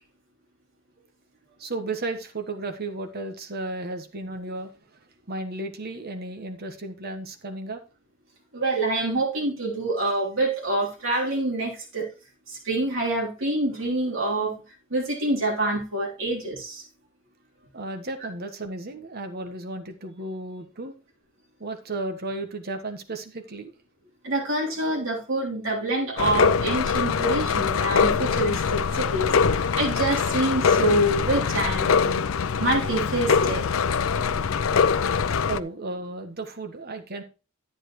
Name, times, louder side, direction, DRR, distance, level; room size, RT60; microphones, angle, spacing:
voice 1, 1.6-4.7 5.3-7.8 17.7-20.9 21.6-23.7 35.5-37.2, right 2 dB, 50° right, 5 dB, 1.3 m, -34 dB
voice 2, 8.5-12.1 12.5-14.6 14.9-16.8 24.2-33.6 35.0-35.1, right 1 dB, 70° right, -3 dB, 3.6 m, -26 dB
sound 1, 26.2-35.6, left 6 dB, 75° left, 0.5 m, -23 dB
10.0 x 9.1 x 3.1 m, 0.32 s
head